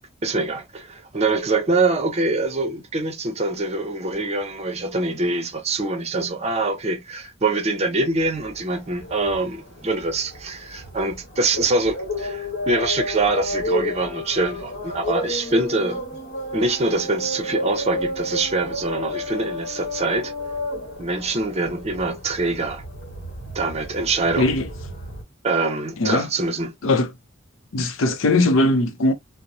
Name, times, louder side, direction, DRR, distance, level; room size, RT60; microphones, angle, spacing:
voice 1, 0.2-16.0 16.5-20.3 21.0-22.8 23.5-24.5 25.4-26.7, right 3 dB, 35° right, 0.6 m, -24 dB
sound 1, 8.2-25.2, left 1 dB, 65° left, 1.1 m, -32 dB
voice 2, 24.4-24.7 26.0-26.3 26.8-27.1 27.7-29.1, left 2 dB, 80° left, 0.6 m, -19 dB
2.9 x 2.0 x 2.5 m
head